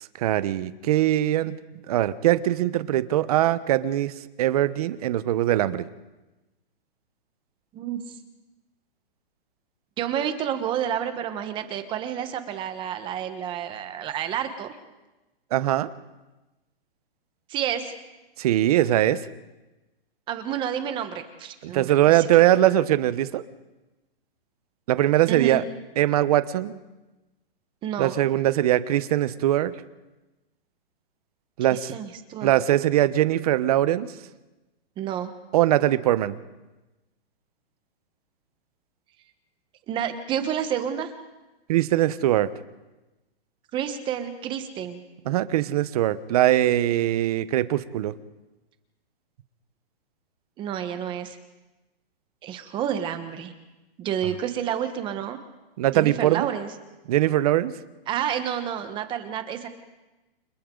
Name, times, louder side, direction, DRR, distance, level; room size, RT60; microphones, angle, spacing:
voice 1, 0.2-1.5 1.9-4.1 4.4-5.8 15.5-15.9 18.4-19.2 21.6-23.4 24.9-25.6 26.0-26.8 28.0-29.7 31.6-31.9 32.4-34.1 35.5-36.4 41.7-42.5 45.2-48.1 55.8-56.5 57.1-57.7, right 13 dB, 40° right, 14 dB, 1.0 m, -21 dB
voice 2, 10.0-14.7 17.5-17.9 20.3-22.3 25.3-25.7 27.8-28.1 31.7-32.5 35.0-35.3 39.9-41.1 43.7-45.0 50.6-51.4 52.4-53.5 54.0-55.4 55.9-56.7 58.1-59.7, right 9 dB, 15° right, 9 dB, 1.2 m, -29 dB
29.5 x 26.0 x 3.9 m, 1.1 s
hypercardioid pair, 165°, 30 cm